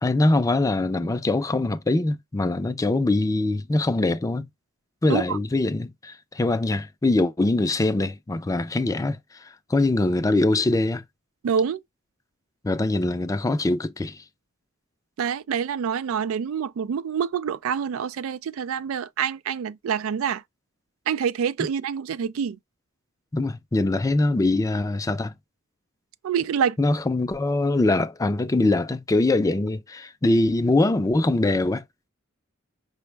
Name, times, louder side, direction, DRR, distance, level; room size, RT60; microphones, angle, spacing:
voice 1, 0.0-4.5 5.0-11.0 12.6-14.2 23.3-25.3 26.8-31.8, left 2 dB, 15° left, 0.4 m, -23 dB
voice 2, 11.4-11.8 15.2-20.4 21.1-22.6 26.2-26.8, right 7 dB, 90° right, 0.3 m, -26 dB
5.2 x 2.1 x 3.2 m
head